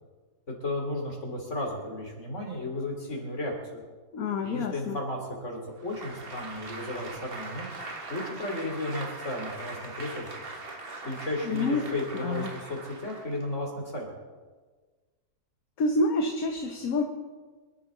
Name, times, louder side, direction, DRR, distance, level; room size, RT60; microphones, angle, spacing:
voice 1, 0.5-3.8 4.4-7.7 8.1-10.3 11.1-14.1, left 1 dB, 45° left, 1 dB, 3.4 m, -34 dB
voice 2, 4.1-5.0 11.4-11.9 12.2-12.5 15.8-17.0, left 2 dB, 60° left, 4 dB, 1.4 m, -27 dB
Applause, 5.8-13.5, right 3 dB, 35° right, 1.6 m, -41 dB
25.5 x 11.0 x 3.9 m, 1.4 s
omnidirectional pair, 1.8 m